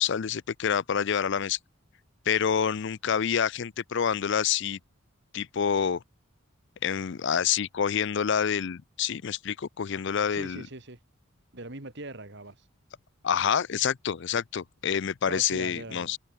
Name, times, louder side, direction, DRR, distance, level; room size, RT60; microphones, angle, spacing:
voice 1, 0.0-1.6 2.3-4.8 5.3-6.0 6.8-10.6 13.2-16.2, left 7 dB, 60° left, 0.5 m, -27 dB
voice 2, 10.3-11.0 11.5-12.7 15.3-16.1, right 2 dB, 55° right, 2.6 m, -41 dB
head